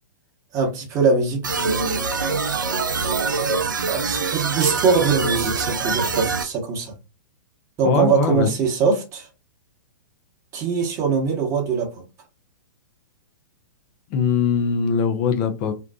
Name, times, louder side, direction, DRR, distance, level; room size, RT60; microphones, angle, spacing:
voice 1, 0.5-2.1 3.9-6.9 7.8-9.3 10.5-12.0, right 5 dB, 30° right, 0.9 m, -22 dB
sound 1, 1.4-6.4, right 4 dB, 75° right, 0.4 m, -24 dB
voice 2, 7.8-8.5 14.1-15.7, left 6 dB, 35° left, 0.5 m, -21 dB
2.6 x 2.2 x 2.3 m
figure-of-eight pair, 110°, 10 cm